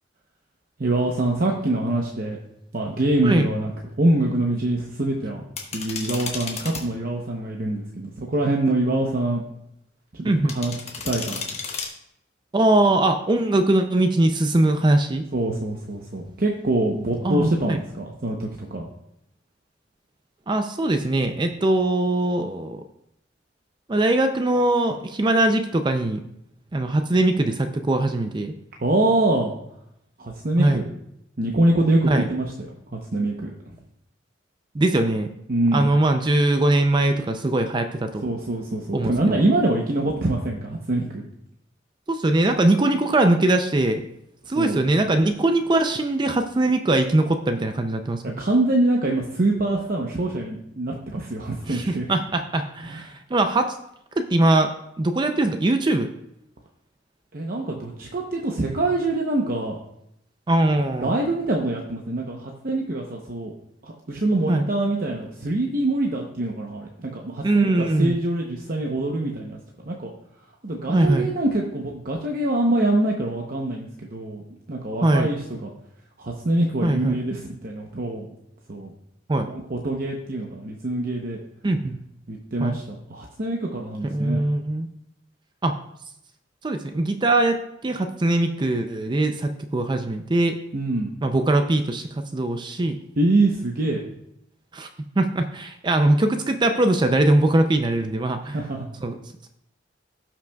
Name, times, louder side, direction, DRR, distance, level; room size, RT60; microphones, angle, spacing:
voice 1, 0.8-2.4 2.7-3.7 4.0-5.4 5.7-9.4 10.1-10.8 11.0-11.5 15.3-18.9 28.8-29.5 30.2-30.9 31.4-32.5 33.1-33.5 35.5-35.9 38.2-41.2 44.6-44.8 48.4-52.1 52.9-53.0 57.3-59.8 61.0-63.5 63.8-70.1 70.6-75.7 76.2-78.3 78.7-78.9 79.5-81.4 82.3-84.4 90.7-91.1 93.2-94.0 98.5-98.9, right 2 dB, 50° right, 0 dB, 0.8 m, -24 dB
sound 1, 5.6-6.8 10.5-11.9, left 5 dB, 35° left, 1.3 m, -32 dB
voice 2, 10.2-10.6 12.5-15.2 17.2-17.8 20.5-22.8 23.9-26.2 26.7-28.5 30.6-30.8 32.0-32.3 34.7-35.3 35.7-38.2 38.9-39.5 42.1-44.0 44.5-48.4 51.7-53.8 54.2-54.7 55.0-56.1 60.5-61.2 64.5-64.7 67.4-68.1 70.9-71.3 75.0-75.3 76.8-77.2 79.3-79.5 81.6-82.0 82.6-82.8 84.1-84.9 85.6-85.8 86.6-90.6 91.2-93.0 94.7-94.9 95.2-98.6 99.0-99.1, right 2 dB, 25° right, 7 dB, 0.4 m, -21 dB
16.5 x 5.9 x 2.3 m, 0.78 s
head